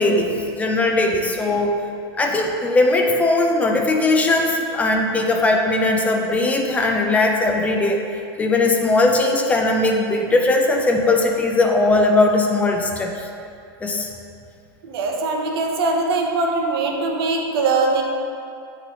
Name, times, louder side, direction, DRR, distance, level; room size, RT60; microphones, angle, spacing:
voice 1, 0.0-1.7 2.2-8.0 8.4-13.1 13.8-14.1, left 2 dB, 10° left, 2 dB, 0.4 m, -19 dB
voice 2, 14.8-18.0, right 3 dB, 70° right, 1 dB, 0.8 m, -21 dB
8.5 x 3.9 x 2.9 m, 2.5 s
supercardioid pair, 145°, 13 cm